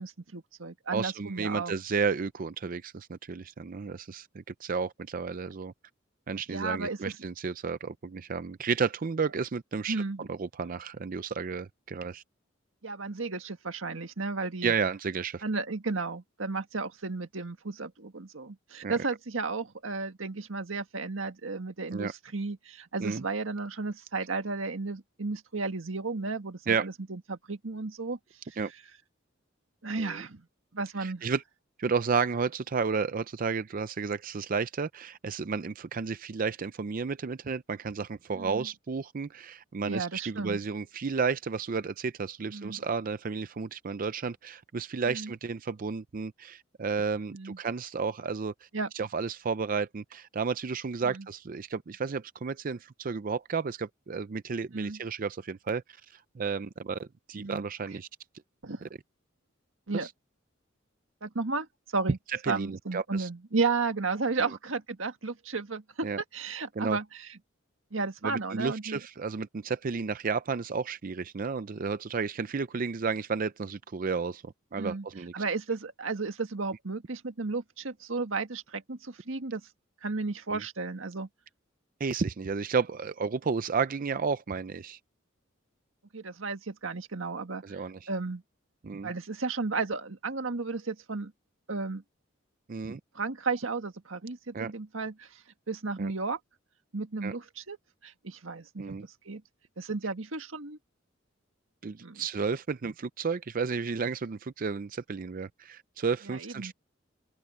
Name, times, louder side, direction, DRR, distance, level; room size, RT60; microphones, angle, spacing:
voice 1, 0.0-1.7 6.5-7.2 9.9-10.3 12.8-14.7 15.4-28.2 28.5-28.6 29.8-30.4 30.7-31.3 38.3-38.7 39.8-40.6 42.5-42.8 45.0-45.3 47.3-47.6 48.7-48.9 51.0-51.2 54.7-55.0 57.3-57.6 58.6-58.9 59.9-60.1 61.2-61.7 61.9-62.2 62.5-67.3 67.9-69.0 74.8-75.0 75.3-79.6 80.0-81.3 86.1-88.4 89.0-91.3 91.7-92.0 93.1-95.4 95.7-96.4 96.9-97.8 98.0-99.0 99.2-99.4 99.8-100.8 102.0-102.2 106.3-106.7, right 3 dB, 90° right, 1.7 m, -33 dB
voice 2, 0.9-5.7 6.3-12.2 14.6-15.4 18.8-18.9 21.9-22.1 23.0-23.2 26.7-26.9 28.6-28.7 30.0-30.3 31.0-31.4 31.8-48.7 48.9-55.8 56.1-58.1 59.9-60.1 62.3-63.3 66.0-66.2 66.8-67.0 68.2-75.4 80.5-80.6 82.0-85.0 87.6-88.1 88.8-89.1 92.7-93.0 94.5-94.7 96.0-96.1 97.2-97.3 98.8-99.1 101.8-106.7, right 5 dB, 45° right, 0.5 m, -32 dB
open air
head